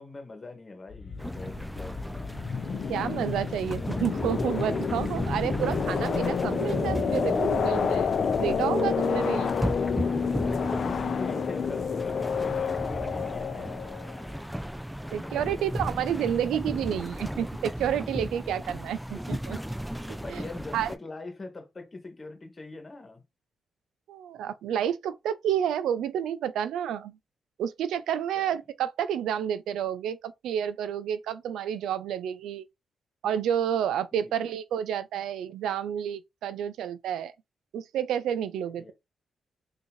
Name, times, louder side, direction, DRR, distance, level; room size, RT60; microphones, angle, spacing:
voice 1, 0.0-2.5 10.8-13.9 15.0-16.2 20.2-23.3 28.3-28.6 34.1-34.5 35.2-35.3 38.8-38.9, left 3 dB, 35° left, 1.6 m, -43 dB
sound 1, 0.9-14.3, left 6 dB, 60° left, 0.6 m, -29 dB
sound 2, 1.2-21.0, equal, 5° right, 0.4 m, -35 dB
voice 2, 2.9-8.1 8.4-9.6 15.1-19.6 20.1-20.4 20.7-20.9 24.1-27.2 27.6-32.6 33.2-37.3 37.7-38.9, right 9 dB, 85° right, 0.3 m, -30 dB
3.5 x 2.7 x 3.0 m
cardioid pair, 65°, 0 cm